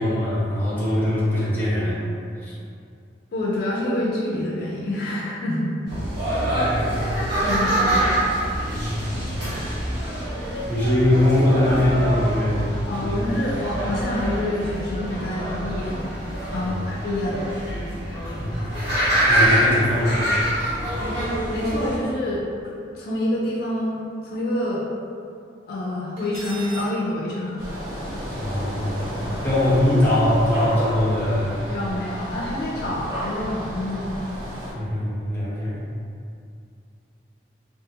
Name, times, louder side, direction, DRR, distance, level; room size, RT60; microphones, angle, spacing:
voice 1, 0.0-2.0 2.4-2.5 6.0-6.2 6.5-7.2 8.7-9.1 10.4-12.6 13.0-13.2 16.6-16.8 18.4-18.6 19.3-20.2 28.3-31.6 34.7-35.8, left 1 dB, 10° left, -9 dB, 0.7 m, -22 dB
voice 2, 3.3-5.7 7.4-8.2 12.9-16.1 16.5-17.4 21.5-22.5 22.9-24.8 25.7-27.6 31.7-34.2, left 1 dB, 55° left, -5 dB, 0.3 m, -27 dB
sound 1, 5.9-22.0, right 1 dB, 75° right, 1.3 m, -25 dB
Cutlery silverware, 26.2-26.9, right 2 dB, 30° right, 1.0 m, -37 dB
sound 2, 27.6-34.7, equal, 55° right, 1.0 m, -32 dB
2.4 x 2.4 x 2.7 m, 2.4 s
head